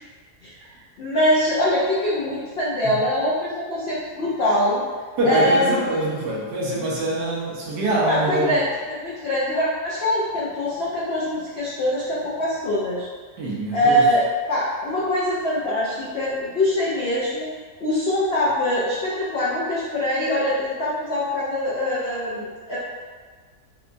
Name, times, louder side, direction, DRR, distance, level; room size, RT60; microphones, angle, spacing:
voice 1, 1.0-4.8 5.2-5.7 8.1-13.1 13.7-17.5 17.8-22.8, left 1 dB, 75° left, -8 dB, 0.5 m, -23 dB
voice 2, 5.2-8.6 13.4-14.0, right 1 dB, 85° right, -5 dB, 1.4 m, -24 dB
4.7 x 2.2 x 2.5 m, 1.5 s
omnidirectional pair, 1.8 m